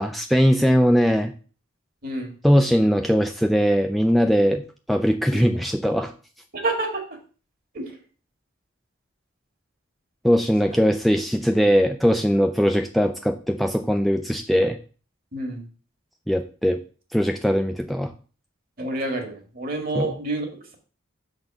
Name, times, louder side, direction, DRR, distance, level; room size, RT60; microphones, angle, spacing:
voice 1, 0.0-1.3 2.4-6.1 10.2-14.8 16.3-16.8 17.1-18.1 19.9-20.1, equal, ahead, 5 dB, 0.4 m, -20 dB
voice 2, 2.0-2.3 5.3-5.4 6.5-7.0 7.7-8.0 15.3-15.6 18.8-20.7, right 2 dB, 45° right, 4 dB, 1.8 m, -28 dB
6.6 x 4.1 x 5.9 m, 0.38 s
head